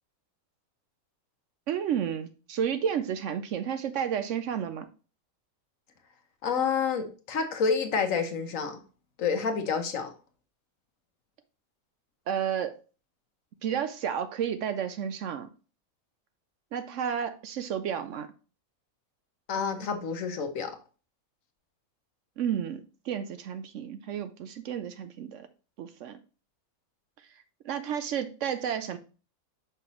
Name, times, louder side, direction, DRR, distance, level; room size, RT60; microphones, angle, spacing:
voice 1, 1.7-4.9 12.3-12.7 13.6-15.5 16.7-18.3 22.4-25.5 25.8-26.2 27.6-29.0, right 8 dB, 70° right, 10 dB, 0.8 m, -31 dB
voice 2, 6.4-8.8 9.2-10.1 19.5-20.8, left 5 dB, 70° left, 6 dB, 1.2 m, -29 dB
5.7 x 5.4 x 3.0 m, 0.36 s
omnidirectional pair, 1.5 m